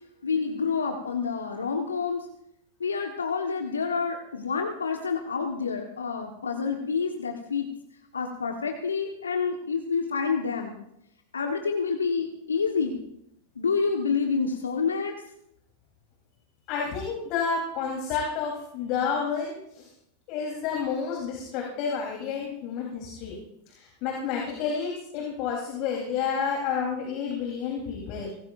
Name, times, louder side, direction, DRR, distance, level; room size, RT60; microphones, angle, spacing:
voice 1, 0.2-2.3 2.8-7.7 8.1-10.8 11.3-13.0 13.6-15.1, left 5 dB, 70° left, 3 dB, 1.4 m, -28 dB
voice 2, 16.7-19.9 20.3-23.4 23.7-28.3, left 6 dB, 40° left, -1 dB, 3.8 m, -30 dB
24.5 x 18.5 x 2.6 m, 0.78 s
figure-of-eight pair, 90°, 0 cm